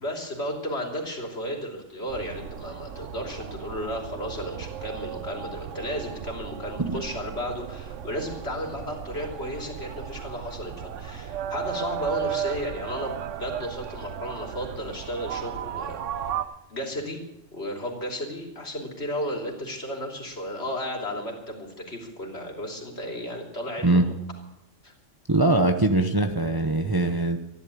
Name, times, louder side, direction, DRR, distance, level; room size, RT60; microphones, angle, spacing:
voice 1, 0.0-16.4 16.7-17.2 17.5-24.1 24.8-24.9, equal, 60° left, 1 dB, 3.6 m, -34 dB
sound 1, 2.1-16.4, right 9 dB, 80° right, 1.1 m, -35 dB
voice 2, 25.3-27.4, right 2 dB, 20° right, 6 dB, 0.8 m, -22 dB
14.0 x 11.0 x 8.5 m, 0.88 s
omnidirectional pair, 1.3 m